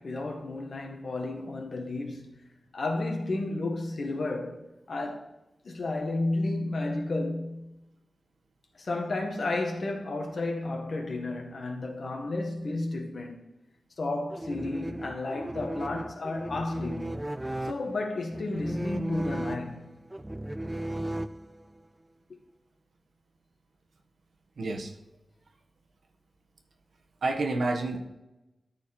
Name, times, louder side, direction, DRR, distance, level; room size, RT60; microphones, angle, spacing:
voice 1, 0.0-2.4 2.7-5.3 5.6-7.7 8.8-13.4 14.0-17.2 17.6-19.9, left 2 dB, 55° left, 1.8 m, -32 dB
sound 1, 14.3-21.8, right 1 dB, 15° right, 0.3 m, -36 dB
voice 2, 24.6-24.9 27.2-28.0, right 2 dB, 80° right, 1.4 m, -28 dB
13.5 x 4.6 x 4.4 m
wide cardioid pair, 145°, 0 cm